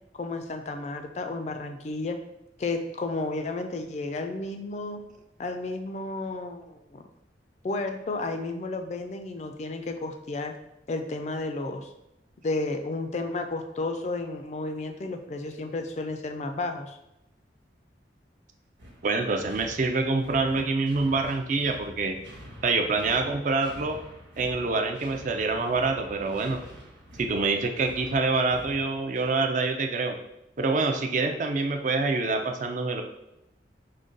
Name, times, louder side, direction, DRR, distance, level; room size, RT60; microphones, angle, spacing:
voice 1, 0.1-2.2 2.6-5.0 5.4-7.0 7.6-10.5 10.9-11.9 12.4-17.0, left 2 dB, 35° left, 6 dB, 0.3 m, -32 dB
sound 1, 18.8-29.5, equal, 80° right, 1.2 m, -47 dB
voice 2, 19.0-22.2 22.6-24.0 24.4-26.6 27.2-30.2 30.6-33.0, right 3 dB, 40° right, 5 dB, 0.4 m, -26 dB
5.0 x 2.2 x 3.8 m, 0.87 s
head